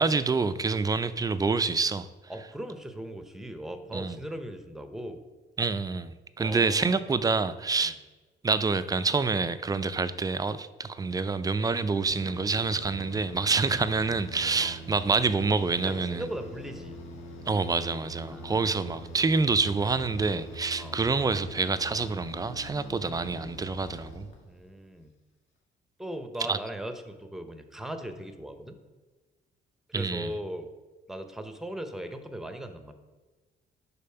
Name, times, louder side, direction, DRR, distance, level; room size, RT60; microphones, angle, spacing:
voice 1, 0.0-2.1 3.9-4.2 5.6-8.0 8.4-16.3 17.5-24.3 26.5-26.6 29.9-30.3, right 4 dB, 20° right, 13 dB, 0.3 m, -27 dB
voice 2, 2.3-5.2 6.4-7.2 7.8-8.0 14.6-14.8 15.8-17.0 18.3-18.9 20.8-21.0 24.5-25.1 26.0-28.8 29.9-30.7 31.1-32.9, right 1 dB, ahead, 7 dB, 0.7 m, -39 dB
sound 1, 12.0-24.8, equal, 75° left, 1.4 m, -44 dB
5.2 x 4.2 x 5.6 m, 1.2 s
cardioid pair, 90°, 20 cm